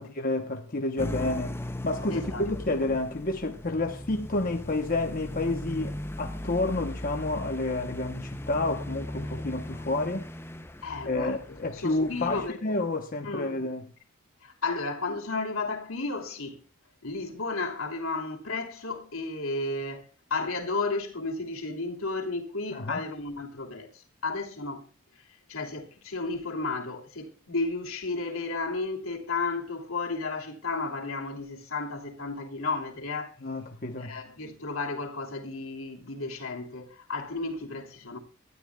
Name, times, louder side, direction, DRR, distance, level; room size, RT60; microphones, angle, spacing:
voice 1, 0.0-10.3 11.1-13.9 22.7-23.0 33.4-34.2, left 2 dB, 40° left, 1.0 m, -30 dB
sound 1, 1.0-12.5, left 1 dB, 10° left, 0.6 m, -38 dB
voice 2, 2.1-2.5 9.2-9.3 10.8-11.4 11.7-12.8 13.2-13.5 14.4-16.6 17.0-24.8 25.5-33.4 34.0-38.2, left 3 dB, 70° left, 3.0 m, -33 dB
23.5 x 12.5 x 2.3 m
head